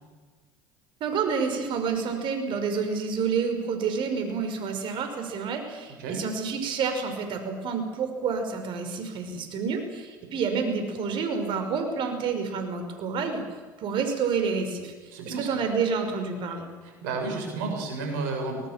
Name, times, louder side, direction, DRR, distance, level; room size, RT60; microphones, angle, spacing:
voice 1, 1.0-13.4 13.8-14.9 15.3-16.7, right 5 dB, 50° right, 6 dB, 5.3 m, -29 dB
voice 2, 15.1-15.6 16.8-18.7, right 3 dB, 75° right, 3 dB, 7.4 m, -32 dB
24.5 x 18.5 x 7.5 m, 1.4 s
hypercardioid pair, 80°, 10 cm